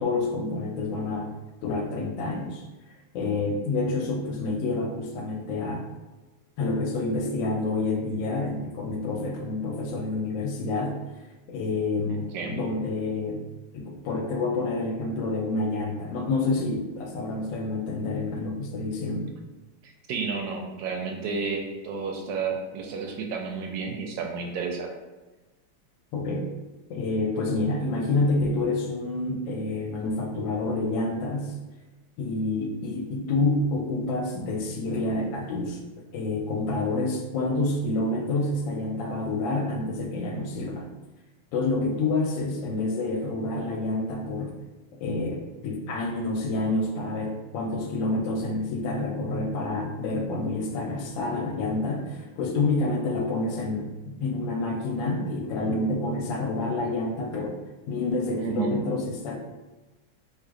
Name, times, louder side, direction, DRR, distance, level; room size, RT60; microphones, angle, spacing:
voice 1, 0.0-1.3 1.6-2.6 3.1-5.9 6.6-11.0 11.5-13.5 13.7-19.3 26.1-26.5 26.9-31.6 32.2-40.9 41.5-44.6 45.0-57.6 57.9-59.4, left 2 dB, 80° left, 2 dB, 1.2 m, -28 dB
voice 2, 12.1-12.6 19.8-24.9 58.4-58.8, right 4 dB, 80° right, 2 dB, 1.3 m, -31 dB
3.1 x 2.3 x 3.6 m, 1.1 s
omnidirectional pair, 2.1 m